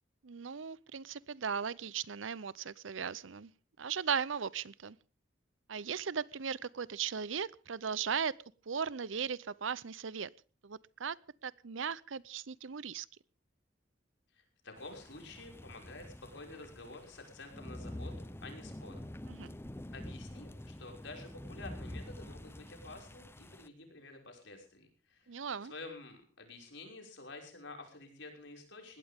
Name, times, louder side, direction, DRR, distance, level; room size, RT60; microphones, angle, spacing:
voice 1, 0.2-3.5 3.8-5.0 5.7-8.4 8.7-10.3 10.6-13.1 19.3-19.5 25.3-25.7, right 6 dB, 85° right, 21 dB, 0.7 m, -37 dB
voice 2, 14.3-19.0 19.9-25.3 25.6-29.0, left 2 dB, 70° left, 3 dB, 5.9 m, -50 dB
sound 1, 14.8-23.7, left 1 dB, 15° left, 0.8 m, -47 dB
20.5 x 17.0 x 3.7 m, 0.36 s
head